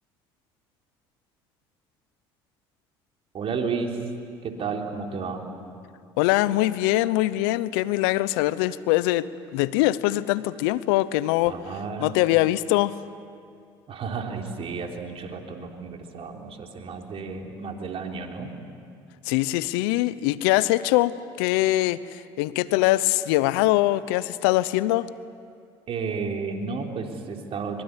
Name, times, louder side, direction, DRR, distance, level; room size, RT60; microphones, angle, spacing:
voice 1, 3.3-4.0 4.4-5.5 11.4-12.1 13.9-18.5 25.9-27.8, right 5 dB, 50° right, 2 dB, 3.7 m, -32 dB
voice 2, 6.2-11.5 12.0-13.0 19.2-25.1, left 17 dB, 80° left, 17 dB, 0.7 m, -23 dB
24.0 x 23.5 x 9.7 m, 2.3 s
hypercardioid pair, 70°, 12 cm